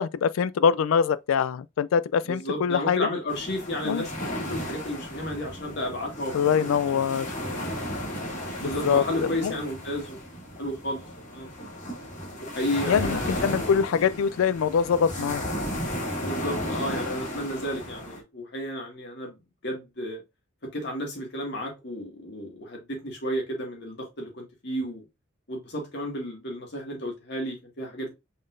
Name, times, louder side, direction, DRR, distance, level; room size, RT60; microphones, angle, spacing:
voice 1, 0.0-3.0 3.8-4.1 6.3-7.3 8.6-9.0 9.4-9.5 12.9-15.4, left 7 dB, 90° left, 0.3 m, -24 dB
voice 2, 2.3-6.7 7.0-7.1 7.4-7.6 8.6-10.2 10.6-11.0 11.3-11.5 12.4-13.4 14.0-14.1 16.2-20.2 20.7-25.0 25.5-28.1, equal, 55° left, 1.8 m, -32 dB
sound 1, 3.3-18.2, equal, 40° left, 2.0 m, -34 dB
5.3 x 3.8 x 2.5 m
head